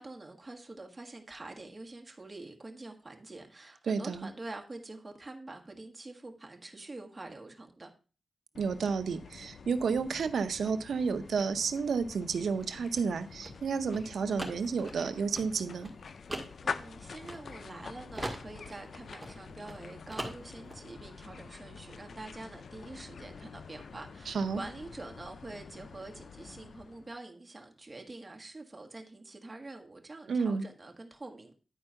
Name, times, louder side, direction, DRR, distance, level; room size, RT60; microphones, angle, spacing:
voice 1, 0.0-7.9 16.6-31.5, right 2 dB, 25° right, 1.7 m, -46 dB
voice 2, 3.9-4.3 8.6-15.9 24.3-24.6 30.3-30.6, right 5 dB, 85° right, 0.7 m, -31 dB
sound 1, 8.5-27.2, left 5 dB, 70° left, 0.5 m, -46 dB
sound 2, 12.5-17.8 18.1-19.8 20.1-20.8, right 1 dB, 10° right, 1.9 m, -41 dB
10.0 x 4.5 x 5.6 m
cardioid pair, 80°, 0 cm